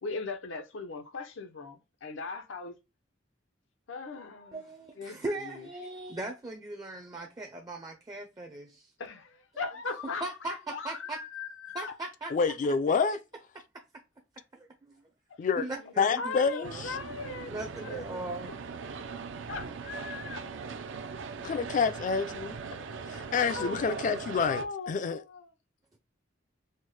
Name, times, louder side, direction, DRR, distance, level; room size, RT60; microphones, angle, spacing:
voice 1, 0.0-2.8 3.9-4.6 5.0-5.7 9.0-11.9 15.6-17.5 17.8-18.5 19.5-20.4 22.7-22.8 23.5-24.0 24.5-25.5, left 4 dB, 90° left, 0.7 m, -39 dB
voice 2, 4.5-8.9 10.2-11.2 11.7-12.5 12.9-13.0 13.7-13.8 14.8-15.0 15.6-16.8 17.5-18.6, right 2 dB, 20° right, 0.4 m, -39 dB
voice 3, 12.3-13.2 15.4-15.7 16.0-17.0 21.4-22.6 23.3-25.2, left 5 dB, 45° left, 0.3 m, -28 dB
sound 1, 16.6-24.7, right 5 dB, 75° right, 0.4 m, -40 dB
4.3 x 2.1 x 3.1 m
head